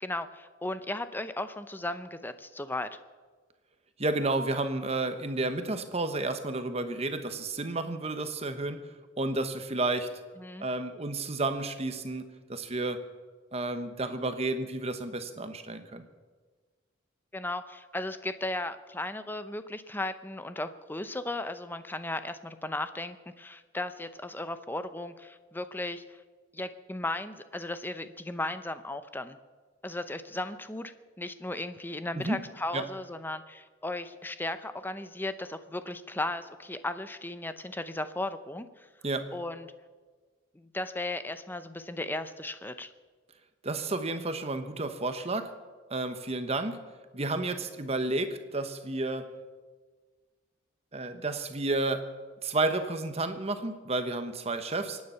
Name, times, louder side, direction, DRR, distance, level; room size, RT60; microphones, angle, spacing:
voice 1, 0.0-2.9 10.4-10.7 17.3-26.2 26.5-29.4 29.8-38.9 39.3-39.7 40.5-42.9, left 2 dB, 10° left, 11 dB, 0.7 m, -36 dB
voice 2, 4.0-8.9 9.2-10.1 10.6-13.0 13.5-16.1 32.1-32.4 32.7-32.9 39.0-39.3 43.6-45.5 45.9-46.8 47.1-49.3 50.9-52.1 52.4-55.0, right 2 dB, 30° right, 8 dB, 1.1 m, -31 dB
24.5 x 9.6 x 5.7 m, 1.4 s
head